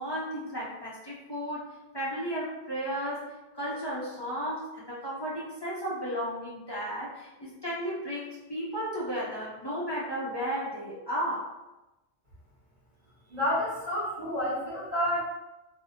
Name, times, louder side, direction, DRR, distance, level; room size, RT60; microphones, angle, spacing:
voice 1, 0.0-1.6 1.9-3.3 3.5-11.5, equal, 40° left, -8 dB, 0.3 m, -34 dB
voice 2, 13.3-15.2, equal, 40° right, -10 dB, 1.0 m, -29 dB
2.6 x 2.0 x 2.7 m, 1.0 s
omnidirectional pair, 1.1 m